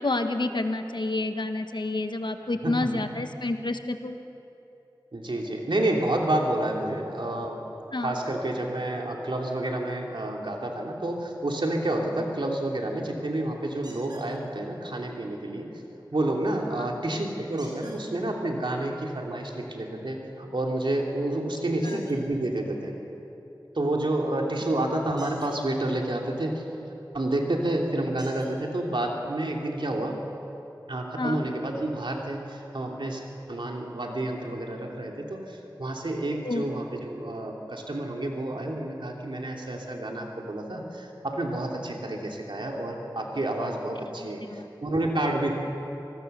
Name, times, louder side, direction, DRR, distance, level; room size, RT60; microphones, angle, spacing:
voice 1, 0.0-4.1 7.9-8.2 16.8-16.9 31.2-31.4 36.4-36.6 44.5-44.7, left 2 dB, 70° left, 7 dB, 1.4 m, -29 dB
voice 2, 5.1-7.6 8.0-15.7 16.1-22.9 23.7-26.6 27.1-30.2 30.9-33.2 33.5-45.5, right 1 dB, 90° right, 0 dB, 2.9 m, -29 dB
sound 1, 13.8-14.3 17.6-18.0 21.8-22.2 25.1-25.6 27.2-27.3 28.2-28.5 29.5-29.6 30.1-30.2, right 1 dB, 60° right, 5.8 m, -48 dB
26.5 x 20.0 x 6.9 m, 2.9 s
wide cardioid pair, 50°, 8 cm